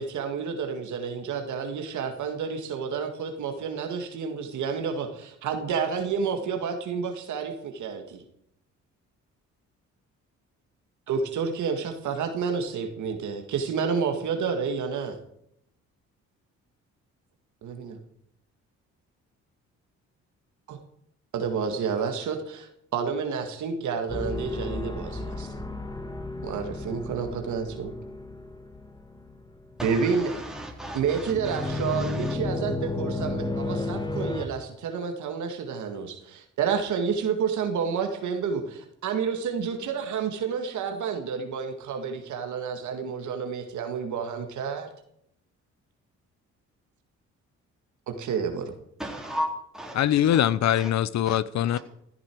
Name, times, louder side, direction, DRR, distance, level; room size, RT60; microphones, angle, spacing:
voice 1, 0.0-8.2 11.1-15.2 17.6-18.0 20.7-20.8 21.3-25.5 26.4-27.9 29.8-30.4 30.9-44.9 48.1-48.7, right 6 dB, 75° right, 1.9 m, -30 dB
sound 1, 24.1-34.5, left 2 dB, 15° left, 1.5 m, -33 dB
voice 2, 29.8-32.4 49.0-50.0 50.3-50.4 50.7-50.9 51.3-51.4 51.7-51.8, equal, ahead, 3.9 m, -35 dB
voice 3, 49.9-51.8, left 11 dB, 65° left, 0.7 m, -22 dB
14.0 x 13.5 x 4.6 m
cardioid pair, 90°, 30 cm